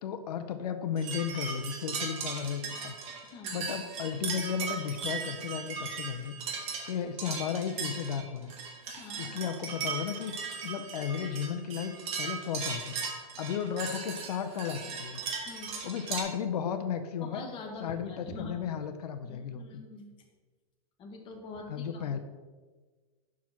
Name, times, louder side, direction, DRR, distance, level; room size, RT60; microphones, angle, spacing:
voice 1, 0.0-6.3 6.9-8.6 9.2-15.2 15.8-17.4 17.8-19.8 21.7-22.2, left 7 dB, 90° left, 9 dB, 0.6 m, -34 dB
sound 1, 1.0-16.2, right 5 dB, 30° right, 1.2 m, -38 dB
voice 2, 3.2-3.7 9.0-9.3 15.4-15.8 17.2-18.6 19.2-20.1 21.0-22.1, left 3 dB, 25° left, 1 dB, 1.2 m, -44 dB
6.0 x 4.8 x 5.6 m, 1.4 s
supercardioid pair, 150°, 20 cm